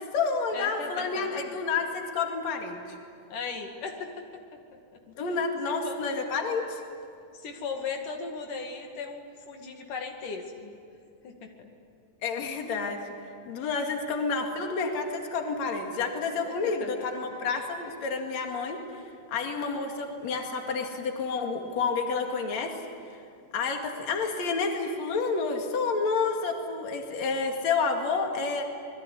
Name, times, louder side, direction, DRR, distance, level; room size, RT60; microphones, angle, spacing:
voice 1, 0.0-2.8 5.2-6.8 12.2-13.0 13.5-18.8 19.3-22.8 23.5-28.6, left 4 dB, 60° left, 3 dB, 3.4 m, -29 dB
voice 2, 0.5-1.6 3.3-4.4 5.8-6.0 7.3-10.7 11.2-11.7 16.5-17.1, left 5 dB, 85° left, 3 dB, 3.8 m, -37 dB
28.0 x 21.5 x 9.9 m, 2.3 s
omnidirectional pair, 3.6 m